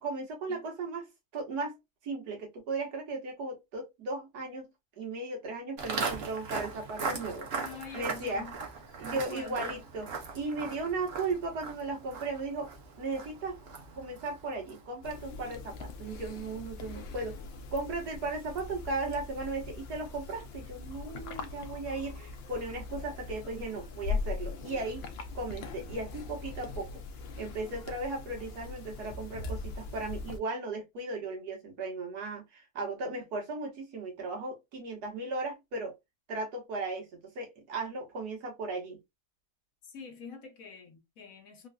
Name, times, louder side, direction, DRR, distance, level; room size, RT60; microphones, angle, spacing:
voice 1, 0.0-1.8 2.0-4.7 5.0-7.5 7.9-8.4 9.0-10.1 10.3-12.7 13.0-13.6 13.9-17.3 17.7-25.0 25.3-26.9 27.4-35.9 36.3-37.1 37.3-39.0, right 3 dB, 75° right, 1.7 m, -36 dB
Walk footsteps, 5.8-15.0, right 4 dB, 50° right, 0.8 m, -39 dB
voice 2, 7.6-8.6 9.1-9.8 39.8-41.7, left 5 dB, 65° left, 1.2 m, -46 dB
sound 1, 15.0-30.4, left 4 dB, 85° left, 0.5 m, -41 dB
3.6 x 2.5 x 2.2 m
omnidirectional pair, 1.7 m